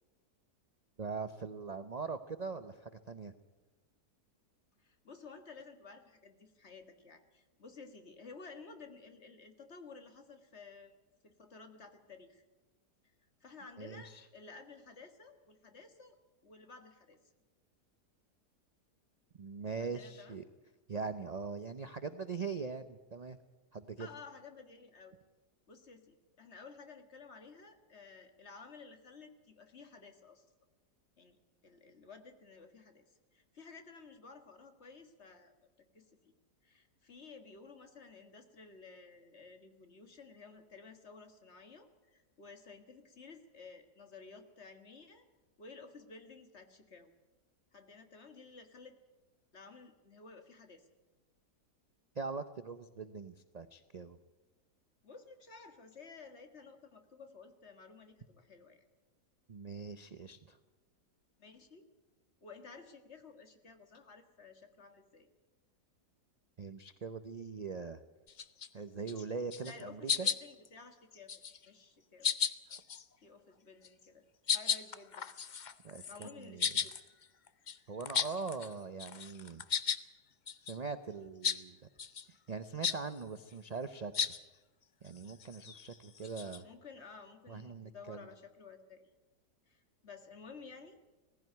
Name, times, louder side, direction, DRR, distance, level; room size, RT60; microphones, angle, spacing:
voice 1, 1.0-3.3 13.8-14.2 19.4-20.4 20.9-23.4 23.7-24.1 52.1-54.2 59.5-60.6 66.6-68.0 68.7-70.3 75.8-76.7 77.9-79.6 80.6-81.8 82.5-84.3 85.0-86.7 87.5-88.3, right 4 dB, 65° right, 10 dB, 0.4 m, -42 dB
voice 2, 4.8-10.9 11.2-12.4 13.4-16.2 16.4-17.2 19.7-20.4 24.0-25.2 25.7-30.5 31.2-31.4 31.6-33.1 33.3-35.5 35.9-36.3 36.6-45.3 45.6-47.1 47.7-49.0 49.5-50.9 55.0-58.8 61.4-61.8 62.4-65.3 69.6-71.3 71.7-72.4 73.2-74.2 74.5-75.3 76.1-77.0 86.6-89.1 89.7-91.0, left 4 dB, 40° left, 7 dB, 1.9 m, -54 dB
sound 1, 68.3-68.7 69.1-69.3 69.5-69.8 70.1-70.7 71.1-71.7 72.2-73.0 73.8-74.0 74.5-78.7 79.0-80.0 80.5-80.8 81.4-81.6 82.0-82.3 82.8-83.0 84.1-84.4 85.1-86.6, left 7 dB, 55° left, 0.5 m, -35 dB
18.5 x 15.5 x 9.3 m, 1.2 s
omnidirectional pair, 1.8 m